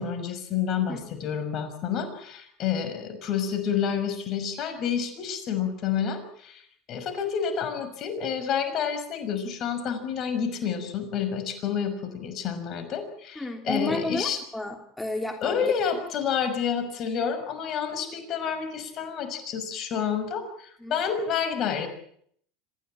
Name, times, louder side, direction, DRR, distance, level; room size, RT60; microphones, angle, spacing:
voice 1, 0.0-6.6 6.9-14.4 15.4-21.9, left 7 dB, 50° left, 9 dB, 6.0 m, -29 dB
voice 2, 13.4-15.7 20.8-20.9, left 2 dB, 10° left, 4 dB, 3.1 m, -31 dB
26.5 x 16.0 x 8.8 m, 0.65 s
hypercardioid pair, 85°, 0 cm